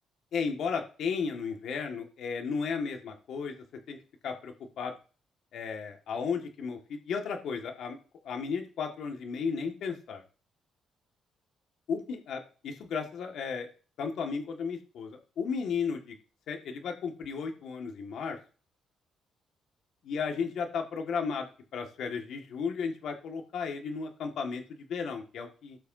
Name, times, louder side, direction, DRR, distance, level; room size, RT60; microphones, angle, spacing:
voice 1, 0.3-3.5 3.9-4.0 4.2-5.0 5.5-8.0 8.2-10.2 11.9-13.7 14.0-16.1 16.5-18.4 20.0-21.4 21.7-24.6 24.9-25.8, left 5 dB, 70° left, 3 dB, 1.8 m, -34 dB
17.0 x 6.8 x 2.8 m, 0.38 s
cardioid pair, 90°, 0 cm